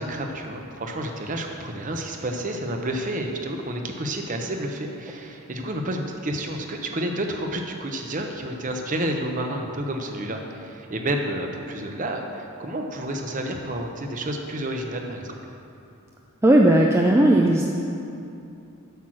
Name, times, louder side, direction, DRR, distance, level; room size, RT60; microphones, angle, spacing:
voice 1, 0.0-15.4, right 1 dB, 35° right, 3 dB, 0.8 m, -30 dB
voice 2, 16.4-17.8, right 1 dB, 10° right, 0 dB, 0.3 m, -17 dB
8.1 x 6.1 x 6.2 m, 2.7 s
head